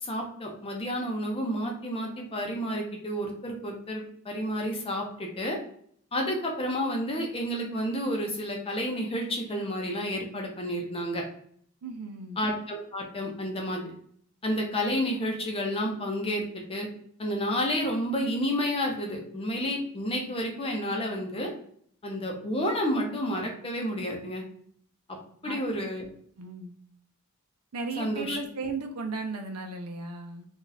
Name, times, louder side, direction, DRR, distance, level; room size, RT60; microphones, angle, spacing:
voice 1, 0.0-5.6 6.1-11.2 12.4-13.9 14.4-16.4 16.7-16.9 17.2-21.5 22.0-24.4 25.4-26.0 28.0-28.4, equal, 25° left, 1 dB, 0.6 m, -30 dB
voice 2, 11.8-12.4 25.4-25.7 26.4-26.7 27.7-30.5, right 3 dB, 80° right, 5 dB, 0.5 m, -35 dB
2.7 x 2.3 x 3.9 m, 0.63 s
head